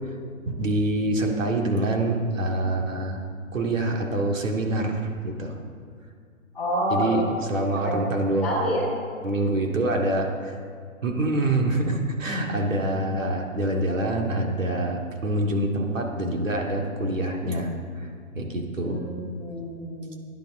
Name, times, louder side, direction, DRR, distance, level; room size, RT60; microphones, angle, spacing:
voice 1, 0.5-3.2 3.5-5.5 6.9-7.2 7.5-8.5 9.2-10.5 11.0-17.7 18.0-18.1 18.4-19.0, right 1 dB, 65° right, 1 dB, 2.3 m, -25 dB
voice 2, 6.5-7.2 7.8-8.0 8.4-8.8 18.8-20.2, equal, ahead, -12 dB, 3.0 m, -28 dB
16.5 x 10.5 x 3.8 m, 2.3 s
hypercardioid pair, 170°, 42 cm